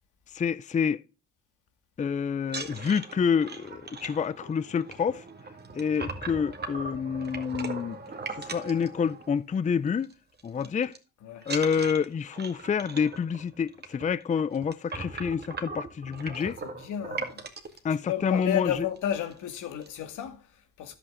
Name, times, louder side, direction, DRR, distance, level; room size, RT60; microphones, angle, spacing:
voice 1, 0.3-1.0 2.0-5.3 5.8-8.0 8.3-10.1 10.4-11.0 11.5-16.6 17.8-18.9, left 6 dB, 25° left, 0.5 m, -28 dB
sound 1, 2.4-9.6 9.9-10.1 10.4-11.0 11.4-17.8 18.5-18.6 18.9-19.1 19.3-19.9, right 4 dB, 35° right, 2.1 m, -39 dB
voice 2, 16.4-17.4 17.9-21.0, left 10 dB, 85° left, 2.2 m, -33 dB
11.0 x 8.1 x 3.7 m
cardioid pair, 90°, 30 cm